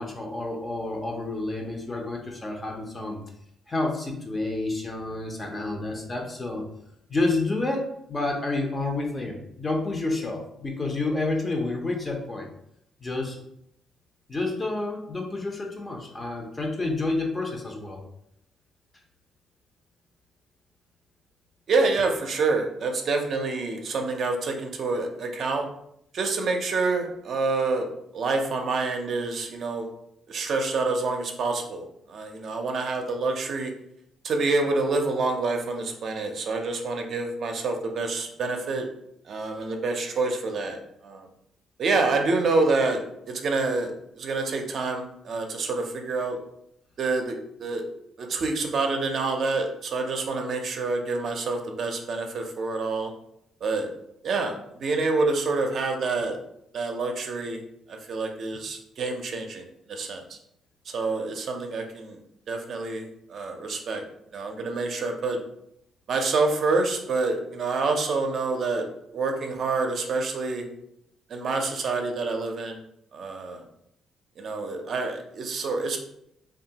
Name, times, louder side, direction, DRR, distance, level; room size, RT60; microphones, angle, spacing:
voice 1, 0.0-3.2 3.7-6.6 7.1-12.5 13.0-13.4 14.3-18.0, left 2 dB, 25° left, 1 dB, 0.6 m, -29 dB
voice 2, 21.7-25.7 26.1-27.9 28.1-29.9 30.3-33.7 34.2-38.9 39.3-41.3 41.8-43.0 43.3-46.4 47.0-47.8 48.2-53.1 53.6-53.9 54.2-56.4 56.7-57.6 57.9-60.4 60.9-62.2 62.5-64.0 64.3-65.4 66.1-68.8 69.1-70.7 71.3-72.8 73.1-73.6 74.4-76.0, right 3 dB, 60° right, 3 dB, 0.5 m, -27 dB
2.8 x 2.3 x 2.7 m, 0.76 s
cardioid pair, 90°, 0 cm